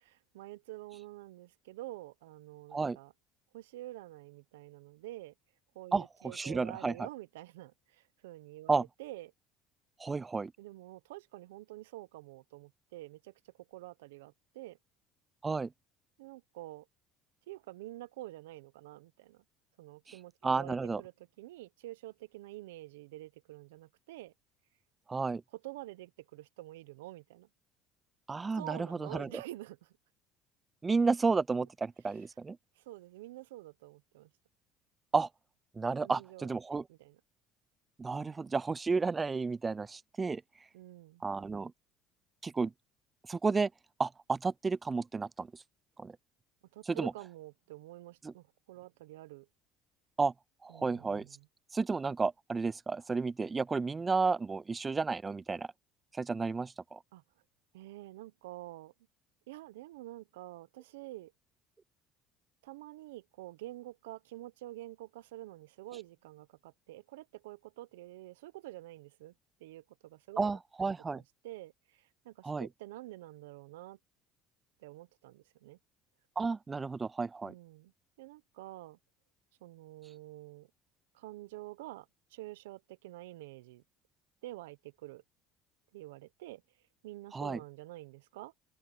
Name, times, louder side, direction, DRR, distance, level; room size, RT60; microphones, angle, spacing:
voice 1, 0.0-3.1 3.5-5.3 5.7-9.3 10.6-14.8 16.2-16.9 17.5-19.4 19.8-24.3 25.5-27.5 28.5-29.9 32.1-32.2 32.8-34.3 36.0-36.5 36.9-37.2 40.7-41.2 46.7-49.5 50.7-51.5 57.1-57.2 57.7-58.9 59.5-61.3 62.6-69.3 69.6-70.5 70.8-74.0 74.8-75.8 77.4-77.9 78.2-79.0 79.6-80.7 81.1-83.8 84.4-85.2 85.9-86.6 87.0-88.5, right 17 dB, 90° right, 0.8 m, -48 dB
voice 2, 6.3-6.9 8.7-8.8 10.0-10.5 15.4-15.7 20.4-21.0 25.1-25.4 28.3-29.3 30.8-32.6 35.1-35.3 35.8-36.8 38.0-40.4 41.2-41.7 42.4-42.7 43.3-43.7 44.0-45.5 46.0-46.1 46.9-47.1 50.2-50.3 50.6-51.2 51.7-55.7 56.2-57.0 70.4-71.2 72.4-72.7 76.4-77.5 87.3-87.6, right 4 dB, 25° right, 0.4 m, -32 dB
open air
supercardioid pair, 80°, 0 cm